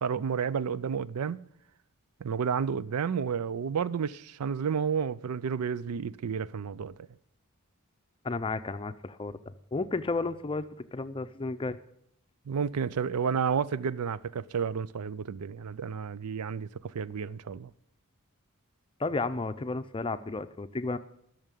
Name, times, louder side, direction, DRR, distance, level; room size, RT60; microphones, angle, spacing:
voice 1, 0.0-1.4 2.2-6.9 12.5-17.7, right 6 dB, 85° right, 0.4 m, -31 dB
voice 2, 8.2-11.8 19.0-21.0, left 3 dB, 25° left, 0.5 m, -33 dB
12.5 x 6.5 x 8.3 m
head